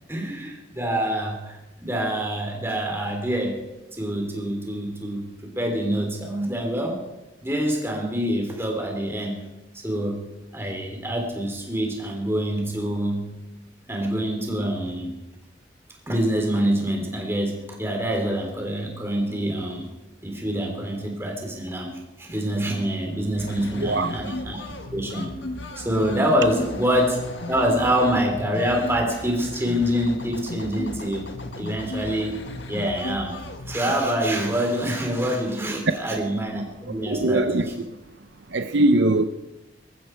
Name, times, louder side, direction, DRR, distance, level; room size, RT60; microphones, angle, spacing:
voice 1, 0.1-3.6 3.9-7.0 7.4-9.3 9.7-10.2 10.5-13.3 13.9-15.1 16.1-19.9 20.2-21.9 22.2-25.3 25.8-27.2 27.5-31.3 31.5-33.4 33.6-37.7, equal, 15° right, 3.4 m, -26 dB
sound 1, 23.4-33.9, left 2 dB, 75° left, 1.8 m, -35 dB
voice 2, 23.8-24.1 35.9-36.0 37.1-37.7 38.5-39.2, right 2 dB, 75° right, 0.7 m, -21 dB
20.0 x 14.5 x 4.6 m
head